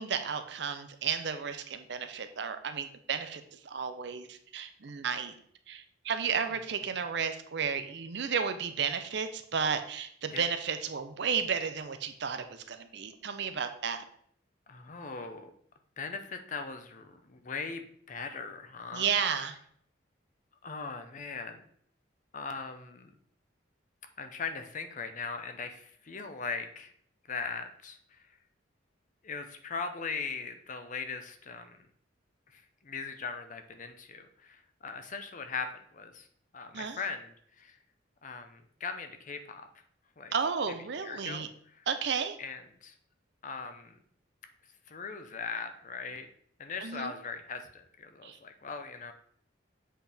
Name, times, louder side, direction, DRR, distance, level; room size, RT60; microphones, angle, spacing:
voice 1, 0.0-5.3 5.7-14.0 18.9-19.6 36.7-37.0 40.3-41.5 41.9-42.4 46.8-47.1 48.2-48.4, right 6 dB, 60° right, 9 dB, 0.6 m, -33 dB
voice 2, 14.7-15.5 16.0-19.1 20.6-21.6 22.3-23.1 24.2-26.9 27.3-28.2 29.2-31.8 32.5-35.7 35.9-36.3 36.5-37.8 38.2-39.7 40.2-40.3 41.0-41.5 41.8-41.9 42.4-42.9 43.4-44.0 44.9-46.3 46.6-49.1, left 5 dB, 40° left, 8 dB, 0.6 m, -39 dB
7.5 x 4.4 x 3.4 m, 0.63 s
head